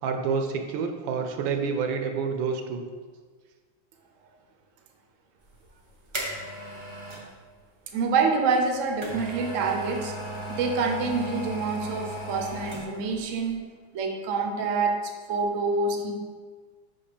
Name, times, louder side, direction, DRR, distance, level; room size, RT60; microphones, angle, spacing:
voice 1, 0.0-2.8, right 5 dB, 75° right, 5 dB, 1.3 m, -28 dB
sound 1, 5.5-7.3 8.5-13.1 13.5-13.6, right 1 dB, 35° right, 0.5 m, -36 dB
voice 2, 7.9-10.1 10.5-13.6 13.9-16.1, right 4 dB, 60° right, 3 dB, 0.8 m, -26 dB
5.6 x 4.2 x 5.0 m, 1.5 s
omnidirectional pair, 2.2 m